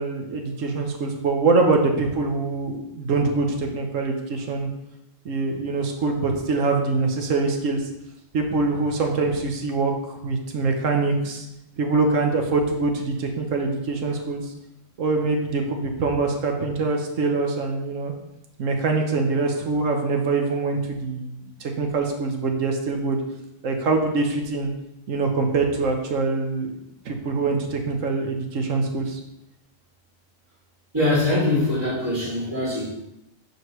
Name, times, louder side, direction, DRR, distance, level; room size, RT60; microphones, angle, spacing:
voice 1, 0.0-4.7 5.2-7.9 8.3-11.5 11.8-14.5 15.0-18.1 18.6-23.2 23.6-24.7 25.1-26.7 27.0-29.2, right 3 dB, 80° right, 3 dB, 1.3 m, -24 dB
voice 2, 30.9-32.9, left 2 dB, 20° right, -8 dB, 2.6 m, -22 dB
6.2 x 5.4 x 3.1 m, 0.87 s
omnidirectional pair, 1.3 m